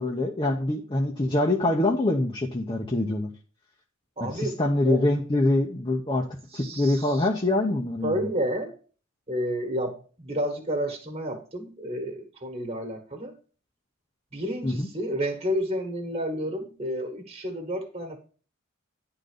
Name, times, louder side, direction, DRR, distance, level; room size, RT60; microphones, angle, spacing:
voice 1, 0.0-3.3 4.2-6.2 6.5-8.3 14.6-14.9, left 2 dB, 25° left, 0 dB, 0.9 m, -25 dB
voice 2, 4.2-5.0 6.5-7.3 8.0-8.7 9.3-13.3 14.3-18.2, equal, 30° right, 3 dB, 1.5 m, -31 dB
10.5 x 4.0 x 6.7 m, 0.40 s
head